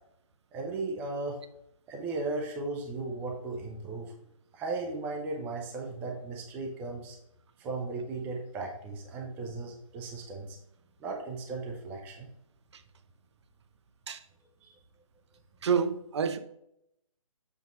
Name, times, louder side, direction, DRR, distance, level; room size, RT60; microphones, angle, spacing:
voice 1, 0.5-1.4 1.9-4.1 4.5-7.2 7.6-10.6 11.0-12.3 14.6-14.7, right 3 dB, 10° right, 0.5 m, -36 dB
voice 2, 15.6-16.4, right 6 dB, 55° right, 0.6 m, -28 dB
7.3 x 2.7 x 5.0 m
figure-of-eight pair, 145°, 18 cm